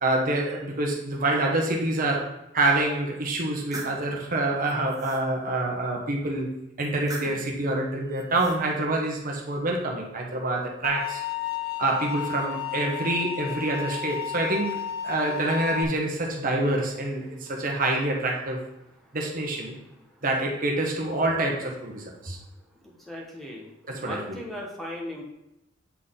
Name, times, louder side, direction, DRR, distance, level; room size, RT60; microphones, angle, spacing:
voice 1, 0.0-2.3 2.5-11.2 11.8-14.8 15.0-18.6 19.1-19.8 20.2-22.4 23.8-24.4, right 2 dB, 45° right, 0 dB, 1.1 m, -26 dB
sound 1, 3.3-4.0 4.6-5.2 6.8-7.5 8.1-8.6, right 2 dB, 20° right, 0.9 m, -40 dB
sound 2, 10.8-15.8, left 10 dB, 55° left, 0.5 m, -33 dB
voice 2, 11.5-11.8 19.0-19.2 20.0-20.2 22.3-22.5 22.7-23.7 24.0-25.2, equal, ahead, -2 dB, 1.1 m, -39 dB
8.3 x 4.2 x 3.7 m, 0.90 s
head